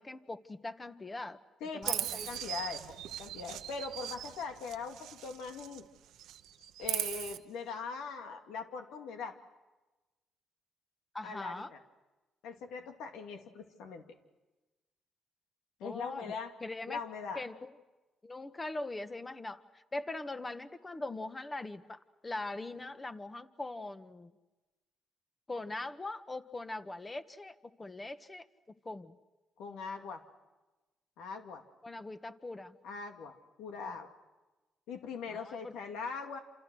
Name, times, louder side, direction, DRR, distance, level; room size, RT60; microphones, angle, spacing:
voice 1, 0.0-1.4 1.7-2.3 11.1-11.7 15.8-16.3 16.6-17.0 17.3-17.7 18.2-24.3 25.5-28.5 28.8-29.1 31.8-32.8 35.3-35.7, left 2 dB, 20° left, 10 dB, 1.5 m, -41 dB
voice 2, 1.6-2.8 3.2-5.8 6.8-9.4 11.2-11.8 12.4-14.0 15.8-16.5 16.9-17.4 29.6-30.2 31.2-31.6 32.8-34.1 34.9-36.4, left 5 dB, 90° left, 5 dB, 2.4 m, -41 dB
Chirp tweet, 1.8-5.9 6.1-7.4, right 12 dB, 85° right, 1.0 m, -39 dB
28.5 x 28.0 x 6.4 m, 1.1 s
cardioid pair, 90°, 0 cm